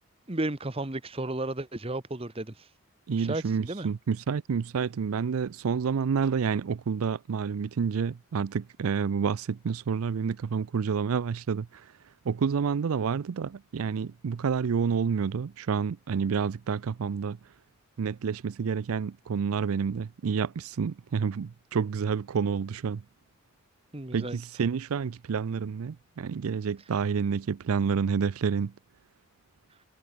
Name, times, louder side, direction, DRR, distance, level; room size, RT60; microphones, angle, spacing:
voice 1, 0.3-2.6 3.1-3.9 23.9-24.4, right 2 dB, 25° right, 1.1 m, -33 dB
voice 2, 3.1-11.9 12.3-17.4 18.0-23.0 24.1-28.7, right 6 dB, 80° right, 0.4 m, -29 dB
head